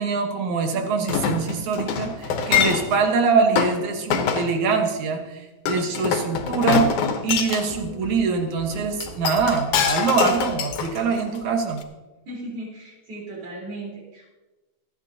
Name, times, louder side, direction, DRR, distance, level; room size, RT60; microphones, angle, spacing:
voice 1, 0.0-6.9 7.2-11.8, right 5 dB, 75° right, 3 dB, 2.7 m, -23 dB
Chink clink, 1.1-3.0 3.6-3.8 4.1-4.5 5.7-7.7 9.0-11.4 11.8-11.9, left 7 dB, 85° left, 2.5 m, -24 dB
sound 1, 6.3-11.7, left 1 dB, 15° left, 4.1 m, -42 dB
voice 2, 12.3-14.3, right 1 dB, 55° right, -4 dB, 4.9 m, -36 dB
27.0 x 9.0 x 2.8 m, 1.2 s
omnidirectional pair, 3.3 m